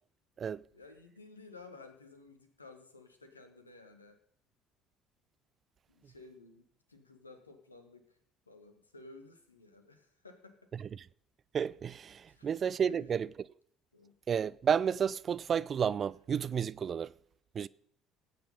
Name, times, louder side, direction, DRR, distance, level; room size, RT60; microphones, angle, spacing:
voice 1, 0.7-4.2 5.9-8.2 8.5-10.7 12.3-12.5 12.9-13.1 13.9-14.1, left 3 dB, 90° left, 1.5 m, -54 dB
voice 2, 10.7-11.0 11.5-13.3 14.3-17.1 17.5-17.7, right 7 dB, 40° right, 0.5 m, -31 dB
17.0 x 8.9 x 5.4 m
figure-of-eight pair, 55°, 0 cm